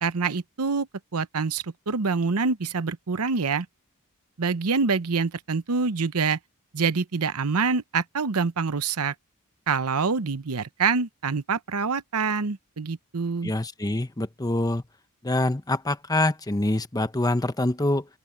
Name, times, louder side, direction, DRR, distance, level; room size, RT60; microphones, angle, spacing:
voice 1, 0.0-3.7 4.4-6.4 6.7-9.1 9.7-13.5, right 5 dB, 80° right, 0.8 m, -26 dB
voice 2, 13.4-14.8 15.2-18.1, left 1 dB, 15° left, 0.9 m, -25 dB
open air
head